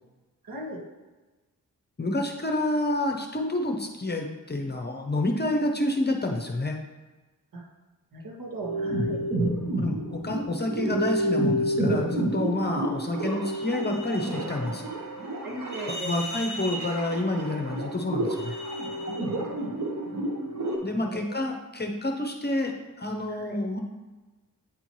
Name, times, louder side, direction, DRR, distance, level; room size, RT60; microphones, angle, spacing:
voice 1, 0.4-0.8 7.5-7.6 8.1-9.2 15.4-16.1 19.1-19.7 21.0-21.4 23.3-23.6, right 1 dB, 85° right, -2 dB, 1.4 m, -38 dB
voice 2, 2.0-6.8 9.8-14.9 15.8-18.5 20.8-23.8, left 1 dB, 30° left, 3 dB, 0.6 m, -28 dB
sound 1, 8.6-20.8, right 1 dB, 55° right, 1.2 m, -30 dB
8.8 x 4.3 x 3.0 m, 1.2 s
wide cardioid pair, 120°, 33 cm